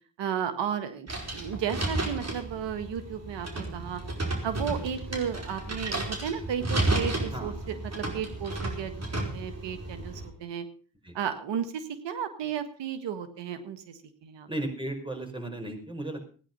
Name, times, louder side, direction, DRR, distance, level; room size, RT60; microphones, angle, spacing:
voice 1, 0.2-4.0 4.4-10.6 11.1-14.5, right 8 dB, 85° right, 10 dB, 1.7 m, -34 dB
sound 1, 1.1-10.3, right 2 dB, 35° right, 5.0 m, -32 dB
voice 2, 14.5-16.2, right 1 dB, 10° right, 5 dB, 5.3 m, -35 dB
16.5 x 10.0 x 5.5 m, 0.40 s
supercardioid pair, 55°, 42 cm